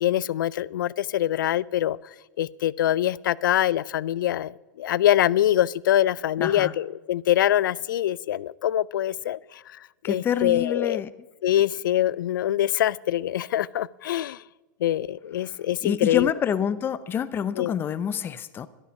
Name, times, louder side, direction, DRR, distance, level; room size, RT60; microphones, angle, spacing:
voice 1, 0.0-2.0 2.4-9.6 10.0-11.0 11.4-14.4 14.8-16.3 17.6-17.7, left 12 dB, 80° left, 22 dB, 0.4 m, -24 dB
voice 2, 6.4-6.7 10.0-11.1 15.4-15.6 15.8-18.7, left 8 dB, 20° left, 15 dB, 0.6 m, -27 dB
13.0 x 12.0 x 5.2 m, 1.1 s
hypercardioid pair, 135°, 11 cm